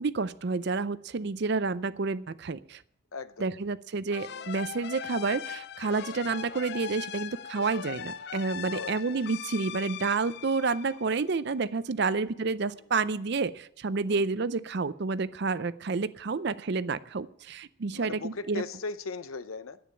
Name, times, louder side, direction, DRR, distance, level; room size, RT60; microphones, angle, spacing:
voice 1, 0.0-2.8 3.4-18.6, right 4 dB, 55° right, 0.5 m, -30 dB
voice 2, 3.1-3.5 4.3-4.5 8.7-9.1 12.7-12.8 14.1-14.3 17.9-19.8, left 4 dB, 85° left, 0.7 m, -39 dB
sound 1, 4.1-11.5, left 8 dB, 50° left, 0.4 m, -40 dB
10.0 x 8.8 x 8.6 m
head